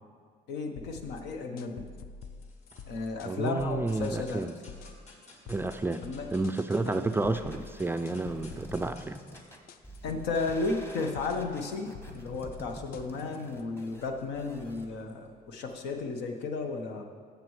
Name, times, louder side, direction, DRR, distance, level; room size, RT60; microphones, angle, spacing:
voice 1, 0.5-1.9 2.9-4.4 6.0-6.3 6.9-7.0 10.0-17.0, left 3 dB, 85° left, 4 dB, 1.1 m, -34 dB
sound 1, 0.8-13.6, left 5 dB, 65° left, 0.5 m, -47 dB
sound 2, 1.7-3.4 3.9-7.3 7.6-16.1, left 1 dB, 40° left, 1.8 m, -57 dB
voice 2, 3.2-4.5 5.5-6.0 6.3-9.2, right 3 dB, 15° right, 8 dB, 0.3 m, -30 dB
sound 3, 6.8-14.8, equal, 15° left, 1.1 m, -48 dB
15.0 x 6.8 x 3.2 m, 2.1 s
cardioid pair, 110°, 17 cm